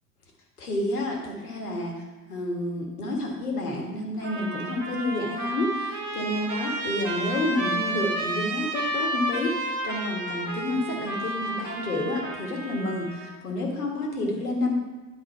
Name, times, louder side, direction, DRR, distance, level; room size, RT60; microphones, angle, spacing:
voice 1, 0.6-2.0 2.3-14.7, left 1 dB, 75° left, 0 dB, 1.8 m, -29 dB
Trumpet, 4.2-13.4, right 1 dB, 40° right, 1.3 m, -31 dB
10.5 x 4.7 x 4.3 m, 1.2 s
figure-of-eight pair, 70°, 46 cm